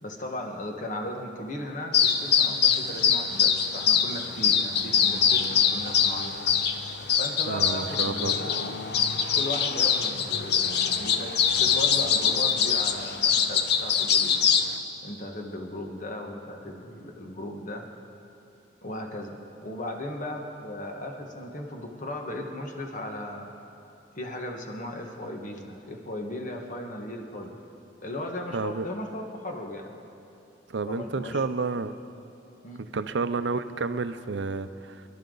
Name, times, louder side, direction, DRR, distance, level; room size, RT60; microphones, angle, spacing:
voice 1, 0.0-6.4 7.2-8.8 9.3-14.5 15.0-17.8 18.8-23.5 24.2-27.6 28.0-30.0 30.8-31.4 32.6-32.9, left 1 dB, 45° left, 2 dB, 1.5 m, -37 dB
sound 1, 1.9-14.7, left 7 dB, 60° left, 0.8 m, -24 dB
voice 2, 7.5-8.3 28.5-28.9 30.7-31.9 32.8-35.0, right 4 dB, 80° right, 11 dB, 0.6 m, -30 dB
26.0 x 12.0 x 3.9 m, 2.8 s
head